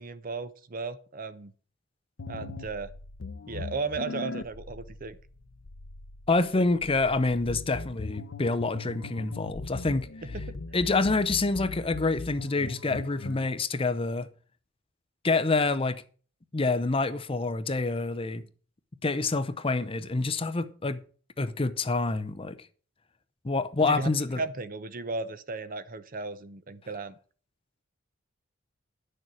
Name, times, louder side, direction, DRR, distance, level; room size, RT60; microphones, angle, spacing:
voice 1, 0.0-1.5 2.3-2.9 3.5-5.2 10.3-10.4 23.8-24.1 24.4-27.2, right 3 dB, 45° right, 0.7 m, -35 dB
sound 1, 2.2-13.5, left 3 dB, 70° left, 0.7 m, -40 dB
voice 2, 6.3-10.1 10.7-14.3 15.2-16.0 16.5-18.4 19.0-21.0 21.4-22.6 23.4-24.4, left 3 dB, 30° left, 0.6 m, -27 dB
10.5 x 6.7 x 6.2 m
head